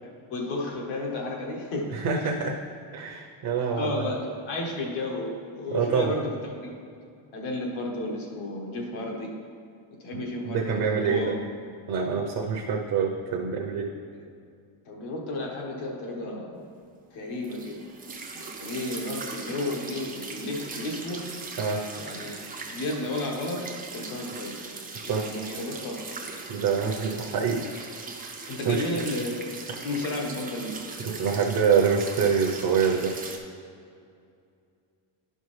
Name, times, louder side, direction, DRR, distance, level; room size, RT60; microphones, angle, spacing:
voice 1, 0.3-2.4 3.7-6.7 7.3-9.3 10.0-11.4 14.1-14.2 14.8-16.6 17.1-17.8 18.6-21.3 21.9-22.3 22.7-24.6 25.0-26.2 27.3-27.4 28.5-29.5 29.8-30.8, left 2 dB, 70° left, 0 dB, 1.5 m, -33 dB
voice 2, 1.9-2.6 2.9-3.9 5.7-6.2 10.1-11.3 11.9-13.9 21.6-21.8 25.0-25.3 26.5-27.7 28.4-29.0 31.0-33.1, right 6 dB, 50° right, 1 dB, 0.7 m, -26 dB
sound 1, 17.4-33.4, right 4 dB, 20° right, 0.4 m, -39 dB
11.0 x 5.5 x 3.2 m, 2.4 s
cardioid pair, 165°, 49 cm